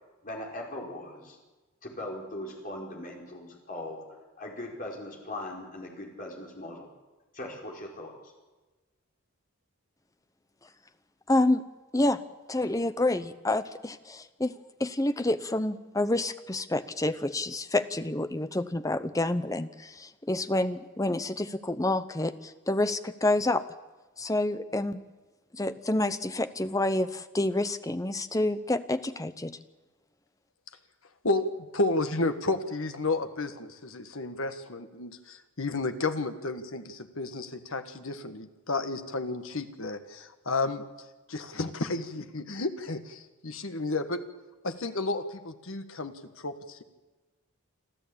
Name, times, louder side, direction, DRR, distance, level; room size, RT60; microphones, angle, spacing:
voice 1, 0.2-1.4 1.8-6.9 7.3-8.3, left 1 dB, 40° left, -1 dB, 4.7 m, -40 dB
voice 2, 11.3-11.6 11.9-12.2 12.5-23.6 24.2-25.0 25.5-29.6, left 2 dB, 15° left, 12 dB, 0.7 m, -28 dB
voice 3, 31.2-40.8 41.3-44.2 44.6-46.8, left 2 dB, 65° left, 8 dB, 1.6 m, -32 dB
26.5 x 13.5 x 8.7 m, 1.2 s
head